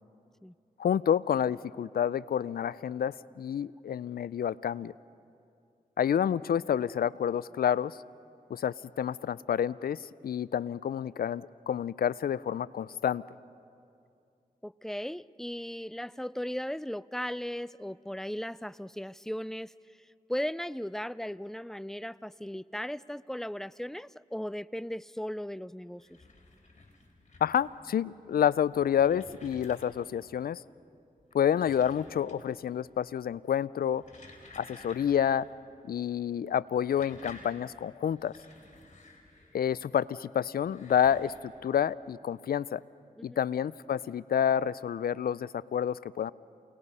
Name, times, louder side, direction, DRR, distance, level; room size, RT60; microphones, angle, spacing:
voice 1, 0.8-4.9 6.0-8.0 8.5-13.2 27.4-30.6 31.3-34.0 34.6-35.5 35.9-38.3 39.5-42.8 43.2-46.3, left 9 dB, 80° left, 20 dB, 0.4 m, -29 dB
voice 2, 14.6-26.2 43.2-43.4, equal, 5° left, 18 dB, 0.4 m, -37 dB
sound 1, 25.8-27.8 28.5-30.2 31.2-32.6 32.9-33.4 33.8-35.5 35.8-35.9 36.6-39.7 40.5-41.4, left 2 dB, 50° left, 3.9 m, -53 dB
28.5 x 19.5 x 5.5 m, 2.5 s
cardioid pair, 40°, 15 cm